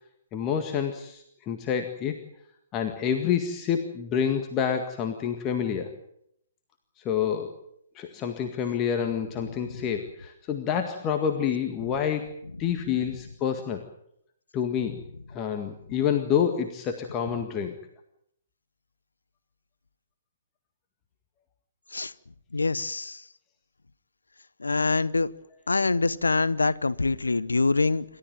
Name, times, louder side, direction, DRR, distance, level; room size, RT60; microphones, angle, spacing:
voice 1, 0.3-2.2 2.7-6.0 7.0-7.6 8.0-12.3 12.6-13.8 14.5-15.0 15.3-17.8, left 8 dB, 25° left, 5 dB, 1.8 m, -28 dB
voice 2, 22.5-23.2 24.6-25.3 25.7-28.0, left 3 dB, 75° left, 18 dB, 0.9 m, -25 dB
28.5 x 13.5 x 9.0 m, 0.75 s
figure-of-eight pair, 125°, 0 cm